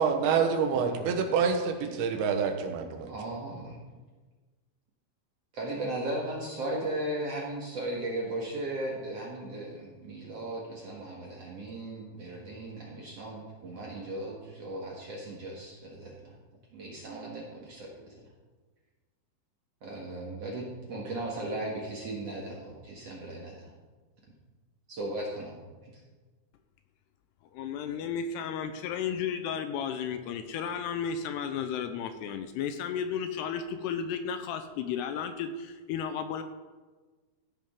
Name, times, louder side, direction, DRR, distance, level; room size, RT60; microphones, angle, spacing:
voice 1, 0.0-3.1, right 6 dB, 85° right, 4 dB, 3.4 m, -27 dB
voice 2, 0.7-1.4 2.0-2.1 3.1-3.8 5.5-16.4 16.7-18.2 19.8-23.7 24.9-26.0, right 1 dB, 60° right, -2 dB, 1.7 m, -37 dB
voice 3, 27.5-36.4, left 7 dB, 85° left, 8 dB, 2.6 m, -33 dB
15.0 x 11.0 x 3.7 m, 1.3 s
omnidirectional pair, 5.1 m